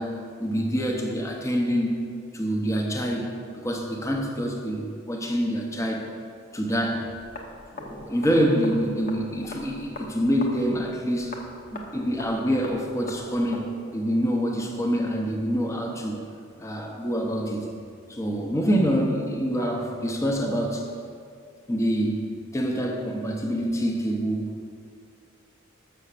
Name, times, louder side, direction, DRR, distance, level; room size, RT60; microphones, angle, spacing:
voice 1, 0.0-2.0 2.3-3.3 3.6-6.1 6.5-7.2 7.7-11.4 11.7-16.2 16.6-17.7 18.1-20.9 21.7-24.4, equal, 15° left, 1 dB, 0.7 m, -26 dB
sound 1, 7.0-13.7, left 2 dB, 45° left, 0.9 m, -42 dB
6.4 x 5.7 x 6.5 m, 2.3 s
head